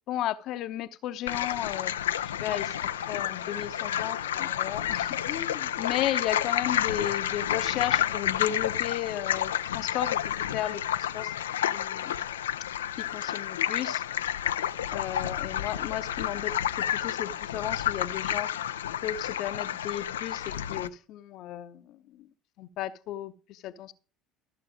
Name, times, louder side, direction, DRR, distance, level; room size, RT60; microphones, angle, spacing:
voice 1, 0.1-1.9 2.4-2.7 3.1-11.3 11.7-12.2 13.0-14.0 14.9-18.5 19.0-22.3 22.6-23.9, left 12 dB, 60° left, 0.8 m, -34 dB
sound 1, 1.3-20.9, left 10 dB, 80° left, 0.4 m, -30 dB
sound 2, 2.7-8.6, right 6 dB, 50° right, 6.1 m, -56 dB
14.0 x 6.8 x 5.0 m
hypercardioid pair, 60°, 0 cm